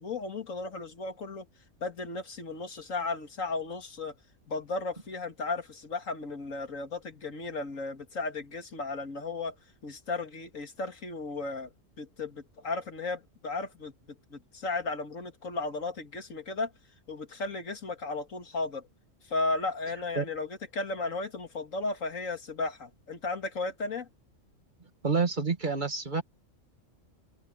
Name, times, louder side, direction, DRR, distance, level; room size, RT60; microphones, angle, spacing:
voice 1, 0.0-1.5 1.8-4.1 4.5-9.5 9.8-11.7 12.0-13.9 14.3-16.7 17.1-18.9 19.3-24.1, left 3 dB, 90° left, 2.4 m, -35 dB
voice 2, 25.0-26.2, right 4 dB, 35° right, 2.1 m, -28 dB
omnidirectional pair, 1.3 m